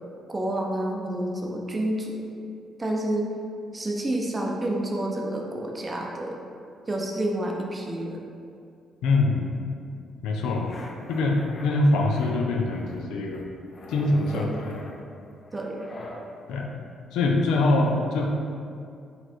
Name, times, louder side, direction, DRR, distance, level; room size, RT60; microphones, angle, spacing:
voice 1, 0.3-2.2 2.8-3.3 3.7-6.3 6.9-8.2 14.3-14.6 15.5-15.9, right 1 dB, 25° right, 0 dB, 0.6 m, -29 dB
voice 2, 9.0-9.5 10.2-10.8 11.1-13.4 13.9-14.5 16.5-16.7 17.1-18.3, left 2 dB, 90° left, 1 dB, 0.5 m, -23 dB
sound 1, 10.4-11.7 12.1-13.0 13.3-16.2, left 2 dB, 45° left, 0.5 m, -44 dB
4.1 x 2.5 x 4.4 m, 2.4 s
cardioid pair, 90°, 0 cm